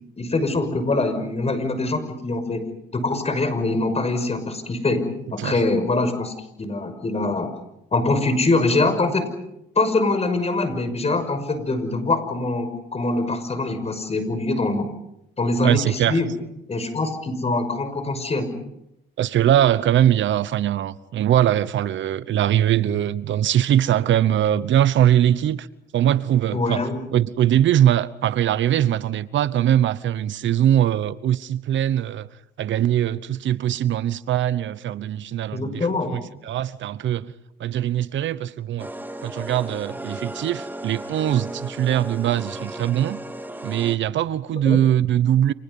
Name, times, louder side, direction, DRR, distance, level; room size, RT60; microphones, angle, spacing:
voice 1, 0.2-2.6 2.9-5.1 5.3-7.5 7.9-9.2 9.8-14.9 15.4-16.3 16.7-18.5 26.5-27.0 35.5-36.2 44.6-44.8, left 2 dB, 30° left, 6.1 m, -23 dB
voice 2, 15.6-16.2 19.2-25.7 25.9-26.8 27.1-32.3 32.6-37.3 37.6-38.9 39.2-43.2 43.6-45.5, right 11 dB, 70° right, 1.0 m, -21 dB
sound 1, 38.8-44.0, right 1 dB, 10° right, 2.1 m, -35 dB
29.5 x 28.0 x 5.5 m
cardioid pair, 90°, 20 cm